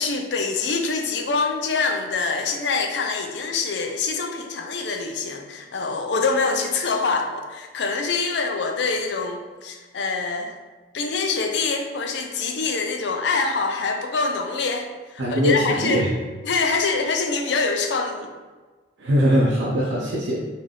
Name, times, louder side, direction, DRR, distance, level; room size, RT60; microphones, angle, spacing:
voice 1, 0.0-10.5 10.9-14.9 15.3-16.1 16.4-18.3, left 4 dB, 75° left, 4 dB, 0.5 m, -25 dB
voice 2, 15.2-16.1 19.0-20.4, equal, 85° right, -5 dB, 0.6 m, -21 dB
3.4 x 2.7 x 3.7 m, 1.3 s
head